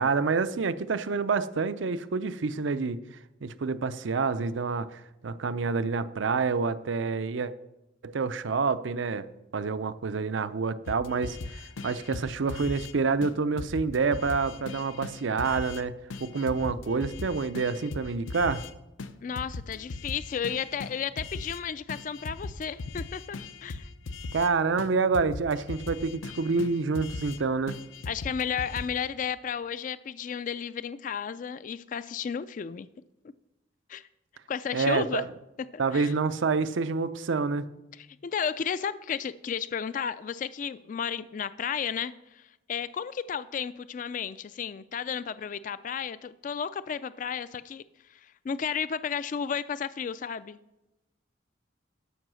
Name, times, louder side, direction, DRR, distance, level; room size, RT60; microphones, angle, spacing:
voice 1, 0.0-3.0 3.4-7.5 8.0-9.3 9.5-15.9 16.2-18.6 24.3-27.8 34.7-35.2 35.8-37.6, right 4 dB, 75° right, 14 dB, 0.5 m, -28 dB
sound 1, 10.9-12.9 13.2-13.3 13.6-15.8 16.1-18.7 19.0-21.6 21.9-24.5 24.8-24.9 25.1-27.4 27.7-28.9, left 3 dB, 90° left, 0.7 m, -39 dB
voice 2, 19.2-23.9 28.1-32.9 33.9-34.1 34.5-35.2 35.7-36.1 38.2-47.8 48.1-50.6, left 7 dB, 40° left, 15 dB, 0.3 m, -33 dB
12.5 x 5.5 x 6.2 m, 0.95 s
head